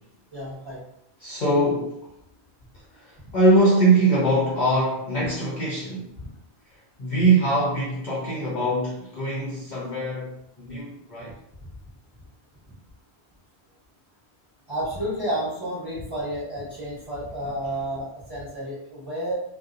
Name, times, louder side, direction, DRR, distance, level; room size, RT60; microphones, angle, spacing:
voice 1, 0.3-0.8 6.2-6.3 14.7-19.3, right 1 dB, 20° right, -10 dB, 1.0 m, -31 dB
voice 2, 1.2-2.0 2.9-6.0 7.0-11.4, right 2 dB, 55° left, -5 dB, 0.5 m, -22 dB
2.6 x 2.0 x 2.3 m, 0.77 s
omnidirectional pair, 1.1 m